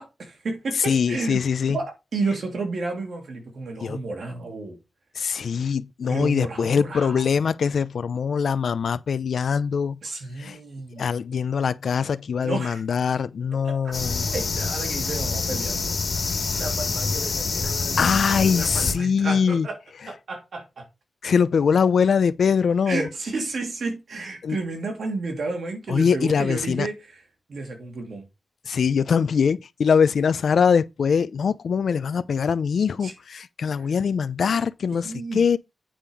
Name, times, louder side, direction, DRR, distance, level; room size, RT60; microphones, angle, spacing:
voice 1, 0.0-1.4 1.7-4.8 6.1-7.4 10.0-11.1 12.4-12.8 13.6-13.9 14.3-15.9 16.6-19.8 20.1-20.9 22.9-27.2 27.5-28.2 33.0-33.1 34.9-35.4, right 3 dB, 65° right, 2.8 m, -32 dB
voice 2, 0.9-1.8 3.8-4.0 5.2-10.0 10.4-10.6 11.0-14.3 18.0-19.7 21.2-23.1 24.4-24.6 25.9-26.9 28.7-35.6, left 6 dB, 75° left, 0.6 m, -22 dB
sound 1, 13.9-18.9, left 4 dB, 60° left, 2.3 m, -26 dB
8.8 x 5.5 x 4.7 m
wide cardioid pair, 165°, 0 cm